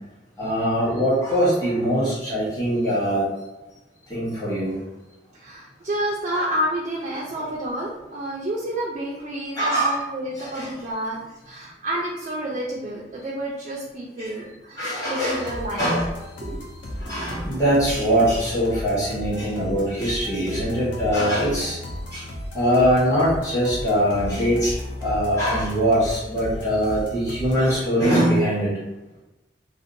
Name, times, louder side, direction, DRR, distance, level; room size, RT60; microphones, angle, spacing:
voice 1, 0.4-3.3 4.1-4.8 6.3-6.4 7.4-7.5 9.6-10.0 10.4-10.7 14.2-14.3 14.8-15.5 15.8-16.1 17.0-21.8 22.1-22.3 22.5-28.7, equal, 20° left, -9 dB, 1.1 m, -22 dB
voice 2, 5.3-11.2 11.4-15.9 16.4-16.6 17.1-17.5, right 1 dB, 35° right, -4 dB, 0.3 m, -29 dB
sound 1, 15.3-27.8, left 1 dB, 85° left, 0.6 m, -35 dB
2.6 x 2.1 x 2.5 m, 1.0 s
head